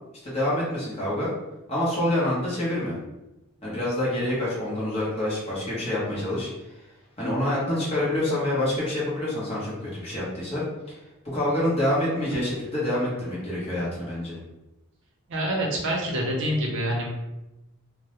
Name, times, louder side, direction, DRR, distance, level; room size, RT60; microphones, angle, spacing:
voice 1, 0.2-1.3 1.7-3.0 3.6-6.5 7.2-11.0 11.3-14.4, left 1 dB, 25° left, -7 dB, 0.8 m, -27 dB
voice 2, 15.3-17.1, right 1 dB, 55° right, -1 dB, 0.6 m, -26 dB
2.2 x 2.0 x 2.9 m, 0.98 s
head